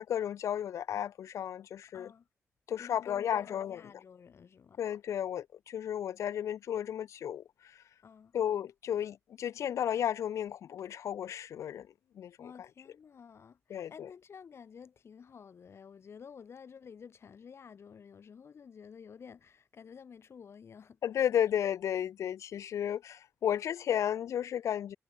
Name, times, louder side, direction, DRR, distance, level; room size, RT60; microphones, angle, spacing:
voice 1, 0.0-2.1 2.7-3.8 4.8-7.7 8.3-11.9 12.2-12.5 13.7-14.1 21.0-25.0, left 10 dB, 80° left, 0.3 m, -33 dB
voice 2, 1.9-2.3 2.8-4.8 8.0-8.3 12.4-21.0, left 6 dB, 55° left, 2.0 m, -51 dB
wide cardioid pair, 115°, 5 cm